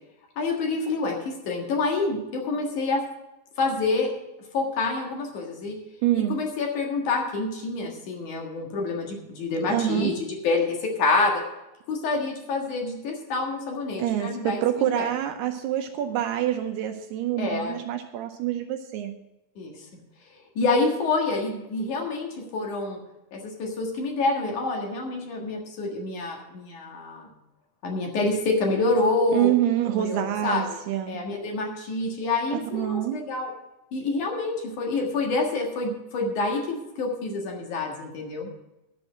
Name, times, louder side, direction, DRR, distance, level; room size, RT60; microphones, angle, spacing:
voice 1, 0.4-1.2 1.4-3.0 3.6-4.1 4.5-5.8 6.1-11.4 11.9-14.6 14.9-15.1 17.4-17.7 19.6-19.7 20.6-23.0 23.3-27.3 27.8-29.5 29.9-30.8 31.1-33.5 33.9-38.7, left 3 dB, 55° left, 0 dB, 2.5 m, -27 dB
voice 2, 6.0-6.4 9.7-10.1 14.0-19.1 29.3-31.2 32.5-33.2, right 12 dB, 80° right, 6 dB, 2.5 m, -26 dB
11.0 x 6.1 x 8.8 m, 0.94 s
omnidirectional pair, 5.2 m